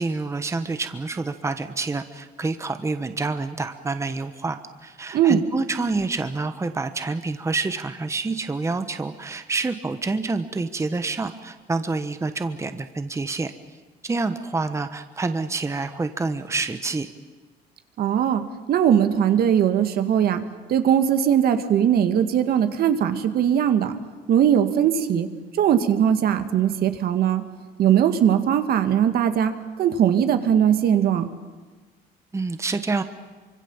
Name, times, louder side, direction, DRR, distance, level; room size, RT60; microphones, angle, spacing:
voice 1, 0.0-13.5 14.0-17.1 32.3-33.0, right 3 dB, 15° right, 9 dB, 1.2 m, -27 dB
voice 2, 18.0-18.4 18.7-20.4 20.7-23.9 24.3-25.3 25.6-27.4 27.8-31.3, right 9 dB, 65° right, 8 dB, 2.0 m, -20 dB
25.0 x 25.0 x 7.2 m, 1.3 s
cardioid pair, 110°, 17 cm